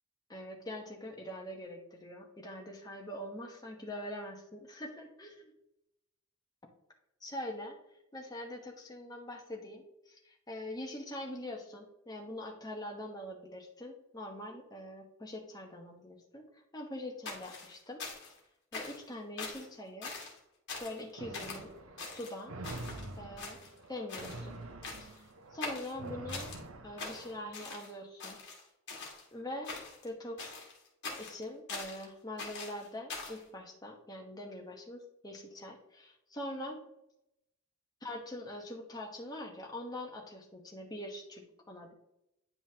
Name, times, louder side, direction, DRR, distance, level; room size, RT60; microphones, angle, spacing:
voice 1, 0.3-5.5 7.2-7.8 8.1-18.0 18.7-20.1 20.8-21.7 22.1-22.5 23.2-23.6 23.9-24.5 25.0-25.1 25.5-26.5 26.8-28.4 29.3-29.7 30.0-30.6 31.2-36.8 38.0-41.9, left 1 dB, 20° left, 0 dB, 1.1 m, -43 dB
sound 1, 17.3-18.4 18.7-19.1 19.4-19.7 20.0-20.4 20.7-21.0 21.3-21.6 22.0-23.1 23.4-23.8 24.1-24.4 24.8-25.2 25.6-26.6 27.0-27.9 28.2-29.2 29.6-30.1 30.4-32.0 32.4-33.4, left 4 dB, 55° left, 1.7 m, -43 dB
sound 2, 21.2-27.6, right 2 dB, 85° right, 0.8 m, -46 dB
9.5 x 5.4 x 2.9 m, 0.83 s
head